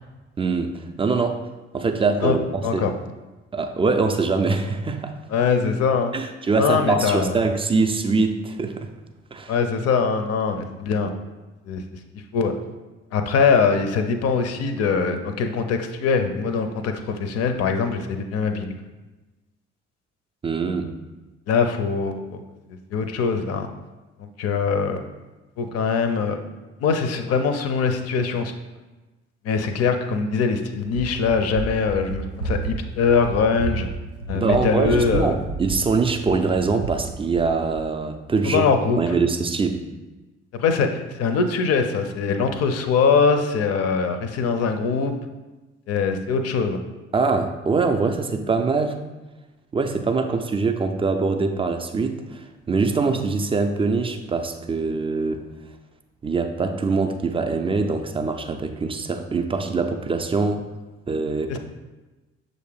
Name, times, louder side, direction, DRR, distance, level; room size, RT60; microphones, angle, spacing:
voice 1, 0.4-1.4 1.7-2.8 3.5-5.1 6.1-8.9 9.3-9.5 20.4-20.9 34.3-38.6 39.0-39.8 47.1-49.0 49.7-55.4 56.2-60.6 61.1-61.6, right 4 dB, 15° right, 6 dB, 0.4 m, -23 dB
voice 2, 5.3-6.1 6.6-7.4 9.5-11.1 11.7-11.8 12.3-12.5 13.1-18.7 21.5-22.4 22.9-23.7 24.2-25.0 25.6-26.4 26.8-28.5 29.4-33.9 34.3-35.3 38.4-39.0 40.6-45.1 45.9-46.8 61.5-61.6, left 5 dB, 45° left, 7 dB, 0.6 m, -22 dB
Run, 30.9-37.9, right 3 dB, 85° right, 0.5 m, -32 dB
6.4 x 2.6 x 3.2 m, 1.2 s
figure-of-eight pair, 45°, 34 cm